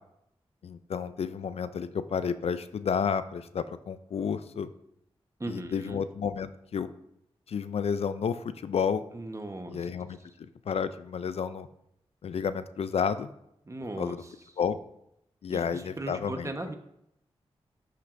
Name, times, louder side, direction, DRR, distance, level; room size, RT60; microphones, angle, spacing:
voice 1, 0.6-4.7 5.5-6.9 7.5-9.0 9.7-11.7 12.2-13.3 14.0-14.2 14.6-14.8 15.4-16.5, left 6 dB, 70° left, 13 dB, 0.4 m, -31 dB
voice 2, 5.4-6.0 9.1-9.9 13.7-14.3 15.5-16.7, right 2 dB, 30° right, 6 dB, 1.2 m, -38 dB
11.5 x 5.9 x 2.6 m, 0.78 s
cardioid pair, 45°, 11 cm